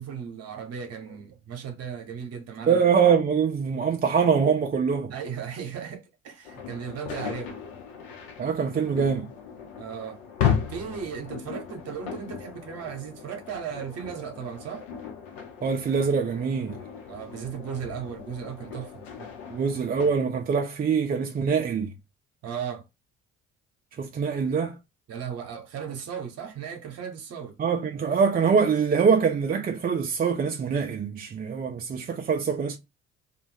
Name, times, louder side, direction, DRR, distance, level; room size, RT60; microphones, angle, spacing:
voice 1, 0.0-2.8 5.1-7.5 9.8-10.2 10.7-14.8 17.0-19.0 22.4-22.8 25.1-27.5, right 7 dB, 50° right, 1.0 m, -36 dB
voice 2, 2.7-5.1 8.4-9.3 15.6-16.7 19.5-21.9 24.0-24.7 27.6-32.8, right 6 dB, 30° right, 0.6 m, -24 dB
sound 1, 6.4-20.1, left 8 dB, 70° left, 0.9 m, -35 dB
2.5 x 2.4 x 3.3 m
figure-of-eight pair, 55°, 33 cm